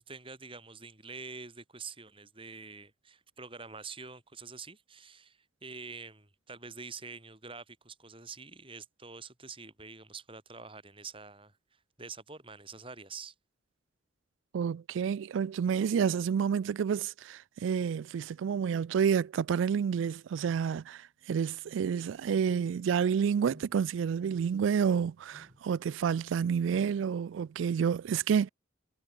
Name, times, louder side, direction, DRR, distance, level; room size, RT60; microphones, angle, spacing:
voice 1, 0.0-11.6 12.0-13.3, right 4 dB, 30° right, 6.7 m, -46 dB
voice 2, 14.5-21.0 21.3-28.5, right 7 dB, 80° right, 0.3 m, -29 dB
sound 1, 22.4-23.0 23.4-23.9 24.3-24.8 25.3-25.7 26.6-27.1, equal, 45° right, 6.0 m, -56 dB
head